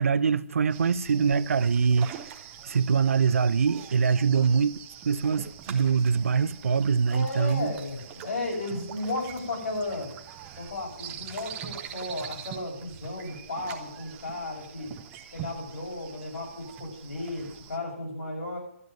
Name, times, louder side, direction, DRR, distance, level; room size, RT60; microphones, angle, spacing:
voice 1, 0.0-2.1 2.6-4.8 5.0-7.7, right 6 dB, 75° right, 0.6 m, -23 dB
sound 1, 0.7-17.8, right 9 dB, 10° right, 0.6 m, -44 dB
voice 2, 7.1-10.1 10.6-14.9 15.3-18.6, left 2 dB, 75° left, 7.1 m, -34 dB
12.0 x 8.0 x 9.5 m
hypercardioid pair, 175°, 8 cm